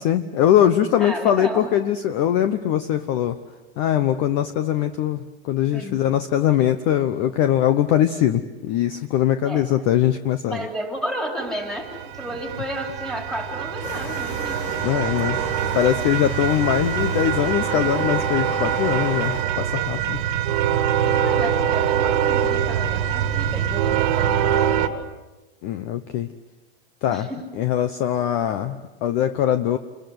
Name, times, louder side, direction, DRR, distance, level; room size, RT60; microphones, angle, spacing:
voice 1, 0.0-3.4 3.8-10.7 14.8-15.4 15.7-20.2 25.6-26.3 27.0-27.3 27.5-29.8, left 11 dB, 30° left, 10 dB, 0.9 m, -21 dB
voice 2, 1.0-1.7 5.7-6.1 9.4-9.7 10.5-14.8 20.1-20.5 20.7-25.1 27.1-27.5, equal, ahead, 3 dB, 3.4 m, -33 dB
sound 1, 11.7-24.9, right 9 dB, 40° right, 1.8 m, -24 dB
sound 2, 13.8-19.4, left 6 dB, 50° left, 3.9 m, -36 dB
29.0 x 23.0 x 7.9 m, 1.1 s
supercardioid pair, 165°, 31 cm